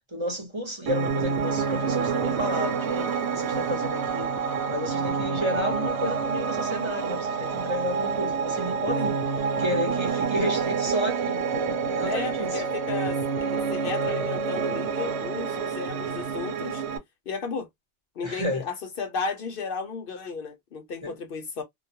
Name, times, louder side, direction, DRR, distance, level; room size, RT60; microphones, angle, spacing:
voice 1, 0.1-4.3 4.7-12.6 18.2-18.7 21.0-21.1, equal, 30° right, 0.9 m, -31 dB
Piano, 0.9-17.0, right 5 dB, 90° right, 0.9 m, -28 dB
voice 2, 12.0-16.8 17.3-17.7 18.2-21.6, left 4 dB, 65° left, 0.7 m, -34 dB
2.3 x 2.2 x 2.6 m
omnidirectional pair, 1.1 m